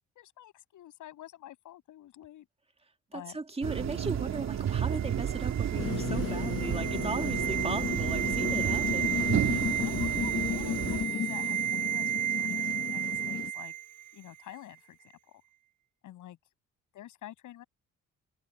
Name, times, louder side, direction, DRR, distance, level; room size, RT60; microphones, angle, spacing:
voice 1, 0.2-2.5 3.1-3.4 9.8-13.7 14.1-15.0 15.3-15.4 16.0-16.4 16.9-17.6, left 13 dB, 80° left, 7.4 m, -48 dB
voice 2, 3.1-9.4, right 3 dB, 20° right, 2.0 m, -37 dB
sound 1, 3.6-11.1, right 9 dB, 65° right, 3.1 m, -32 dB
sound 2, 4.9-14.1 14.4-14.5, right 12 dB, 80° right, 0.8 m, -33 dB
sound 3, 5.7-13.5, left 9 dB, 50° left, 0.8 m, -34 dB
cardioid pair, 90°, 30 cm